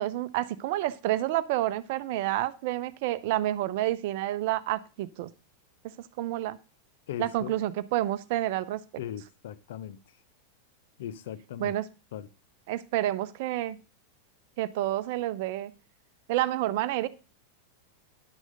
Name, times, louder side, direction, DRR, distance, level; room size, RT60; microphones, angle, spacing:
voice 1, 0.0-5.3 6.2-6.6 7.2-8.8 11.6-11.9 12.7-13.8 14.6-15.7 16.3-17.1, right 14 dB, 50° right, 0.6 m, -29 dB
voice 2, 7.1-7.5 9.0-10.0 11.0-11.8 12.1-12.3, left 10 dB, 55° left, 0.7 m, -38 dB
10.5 x 6.3 x 5.0 m
figure-of-eight pair, 90°, 0 cm